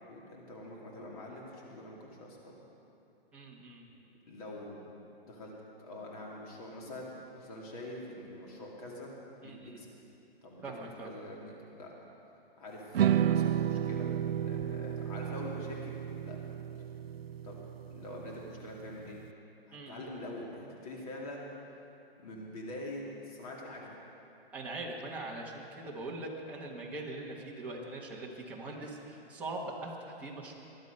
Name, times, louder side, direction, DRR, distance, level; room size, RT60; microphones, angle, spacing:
voice 1, 0.1-2.6 4.3-4.9 5.2-5.5 5.8-9.1 9.4-9.9 10.4-11.9 12.6-14.2 14.4-16.0 16.2-16.4 17.4-19.2 19.7-21.5 22.2-24.0, left 1 dB, 35° left, -2 dB, 2.7 m, -45 dB
voice 2, 3.3-3.9 9.4-9.8 10.6-11.1 19.7-20.1 24.5-30.5, right 2 dB, 5° right, -6 dB, 1.3 m, -42 dB
sound 1, 12.9-19.2, right 10 dB, 70° right, 0.6 m, -32 dB
22.0 x 11.5 x 5.4 m, 2.8 s
hypercardioid pair, 170°, 31 cm